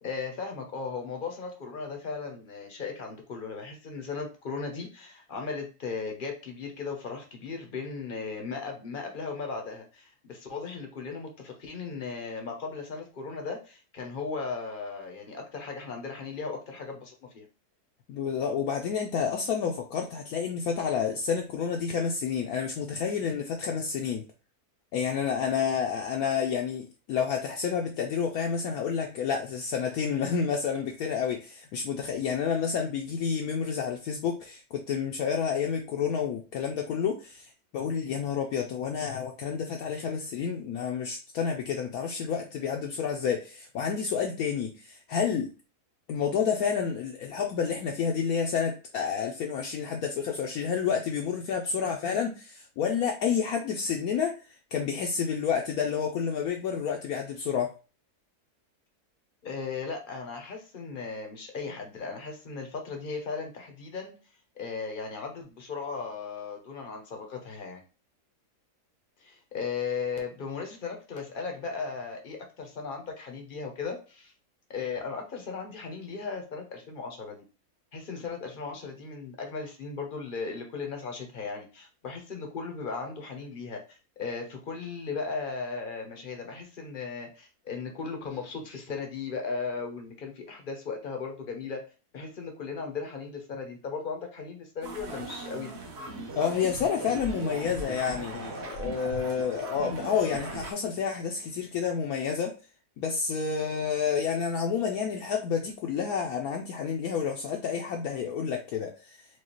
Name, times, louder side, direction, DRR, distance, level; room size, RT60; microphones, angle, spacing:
voice 1, 0.0-17.5 59.4-64.1 64.6-67.8 69.2-74.3 74.7-77.4 77.9-91.8 92.1-95.7, left 5 dB, 45° left, 0.7 m, -37 dB
voice 2, 18.1-24.2 24.9-45.5 46.1-57.8 96.4-102.5 103.0-109.3, left 7 dB, 70° left, 1.0 m, -29 dB
sound 1, 94.8-100.7, right 2 dB, 50° right, 1.0 m, -38 dB
4.7 x 2.3 x 3.0 m
omnidirectional pair, 1.7 m